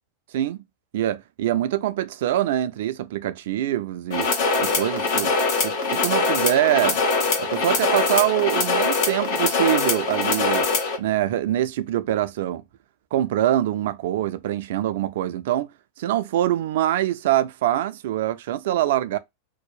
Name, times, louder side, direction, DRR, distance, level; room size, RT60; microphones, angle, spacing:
voice 1, 0.9-4.3 4.6-5.3 5.6-7.0 7.4-10.7 11.0-12.6 13.1-15.7 16.0-19.2, right 13 dB, 70° right, 0.3 m, -24 dB
sound 1, 4.1-11.0, left 3 dB, 60° left, 0.9 m, -23 dB
2.6 x 2.0 x 2.3 m
hypercardioid pair, 95°, 0 cm